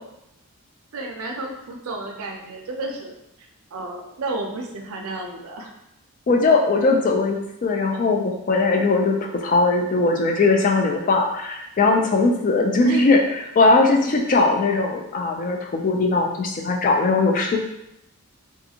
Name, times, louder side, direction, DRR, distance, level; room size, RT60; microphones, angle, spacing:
voice 1, 0.9-5.7 12.8-13.1, right 2 dB, 70° right, 2 dB, 0.4 m, -32 dB
voice 2, 6.3-13.2 13.6-17.6, left 3 dB, 35° left, 1 dB, 0.3 m, -19 dB
2.5 x 2.4 x 2.7 m, 0.83 s
head